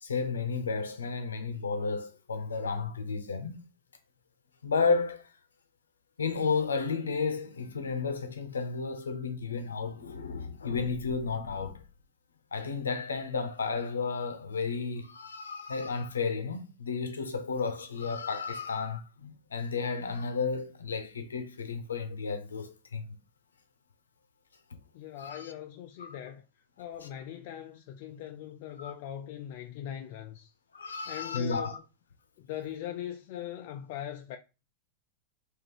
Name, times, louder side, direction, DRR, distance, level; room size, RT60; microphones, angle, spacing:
voice 1, 0.0-3.6 4.6-5.3 6.2-11.8 12.5-23.0 25.2-25.5 26.0-26.2 28.8-28.9 30.7-31.8, left 4 dB, 70° left, 0.7 m, -32 dB
voice 2, 24.9-26.4 26.8-30.5 31.1-31.8 32.4-34.4, left 11 dB, 50° left, 0.4 m, -40 dB
3.7 x 2.9 x 4.5 m
figure-of-eight pair, 90°, 0 cm